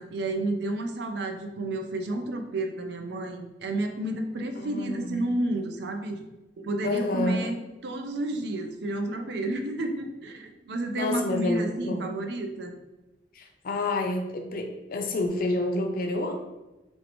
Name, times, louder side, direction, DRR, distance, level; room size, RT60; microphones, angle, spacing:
voice 1, 0.0-6.2 6.6-12.7, right 1 dB, 65° right, 5 dB, 0.4 m, -31 dB
voice 2, 4.6-5.2 6.8-7.5 10.9-12.1 13.3-16.3, left 2 dB, 55° left, 3 dB, 0.5 m, -29 dB
3.1 x 2.7 x 2.9 m, 1.0 s
head